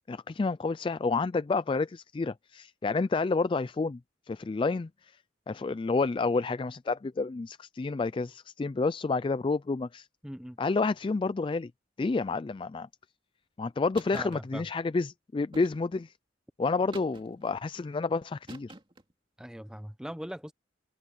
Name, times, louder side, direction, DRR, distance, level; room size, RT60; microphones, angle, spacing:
voice 1, 0.1-4.0 4.3-5.1 5.5-10.1 10.6-11.7 12.0-12.9 13.6-16.1 16.6-18.7, left 3 dB, 25° left, 0.3 m, -29 dB
voice 2, 10.2-10.6 14.1-14.6 19.4-20.5, equal, 5° right, 0.8 m, -40 dB
sound 1, 13.9-14.4 15.5-16.1 16.9-17.5 18.5-19.1, right 2 dB, 30° right, 2.5 m, -47 dB
head